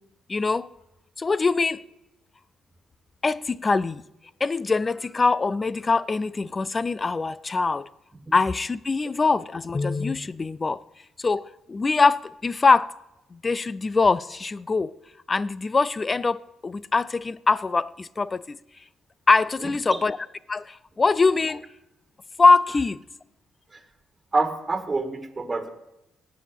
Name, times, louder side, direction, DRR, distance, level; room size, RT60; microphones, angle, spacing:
voice 1, 0.3-0.7 1.2-1.8 3.2-4.0 4.4-7.9 8.3-10.8 11.2-12.9 13.3-14.9 15.3-18.6 19.3-20.2 20.5-21.6 22.4-23.0, left 4 dB, 30° left, 0.5 m, -23 dB
voice 2, 24.3-25.7, right 3 dB, 25° right, 2.1 m, -26 dB
17.5 x 6.3 x 9.1 m
cardioid pair, 90°, 0 cm